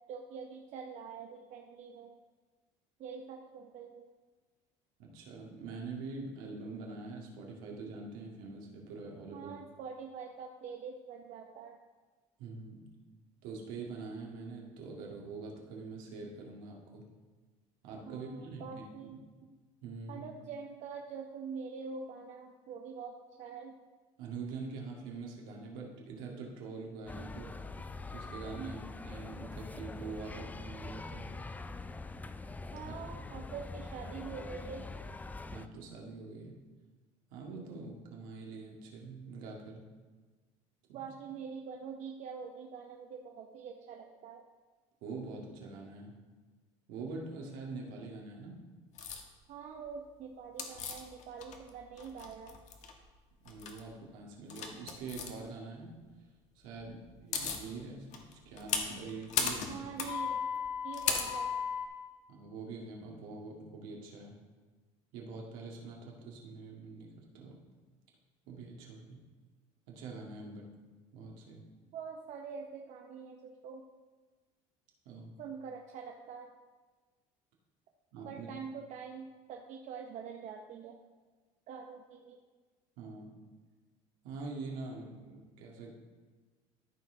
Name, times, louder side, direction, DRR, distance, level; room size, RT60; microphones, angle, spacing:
voice 1, 0.1-2.1 3.0-4.0 9.3-11.8 18.1-19.2 20.1-23.8 28.6-28.8 32.7-34.9 40.9-44.4 49.5-52.6 59.7-60.4 60.8-61.5 71.9-73.8 75.4-76.5 78.2-81.0 81.7-82.4, right 6 dB, 60° right, 2 dB, 0.8 m, -45 dB
voice 2, 5.0-9.5 12.4-12.8 13.4-17.0 17.8-18.8 19.4-19.5 19.8-20.3 24.2-27.6 28.1-31.3 32.9-33.2 35.5-36.6 37.3-39.8 40.9-41.1 45.0-46.1 46.9-48.6 53.4-55.9 56.6-59.9 62.3-64.3 65.1-67.6 68.5-69.2 69.9-70.7 71.1-71.6 75.1-75.3 78.1-78.5 83.0-83.3 84.2-85.9, right 3 dB, 80° right, -1 dB, 1.9 m, -44 dB
sound 1, 27.1-35.7, left 3 dB, 10° left, 0.3 m, -44 dB
sound 2, 49.0-49.2 50.6-51.7 52.0-52.9 53.5-53.8 54.5-55.3 56.8-56.9 57.1-57.7 58.1-61.9, left 6 dB, 60° left, 1.2 m, -35 dB
13.5 x 4.5 x 3.8 m, 1.4 s
supercardioid pair, 100°, 14 cm